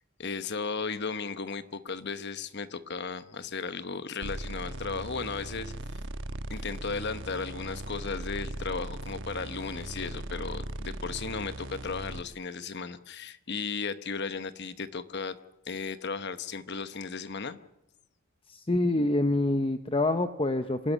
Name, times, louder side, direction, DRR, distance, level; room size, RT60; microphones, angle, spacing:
voice 1, 0.2-5.7 6.5-15.4 15.7-17.6, left 4 dB, 50° left, 12 dB, 1.0 m, -35 dB
sound 1, 4.2-12.2, right 1 dB, 55° right, 1.3 m, -38 dB
voice 2, 18.5-20.9, left 2 dB, 25° left, 8 dB, 0.7 m, -26 dB
26.5 x 11.0 x 9.9 m, 0.91 s
head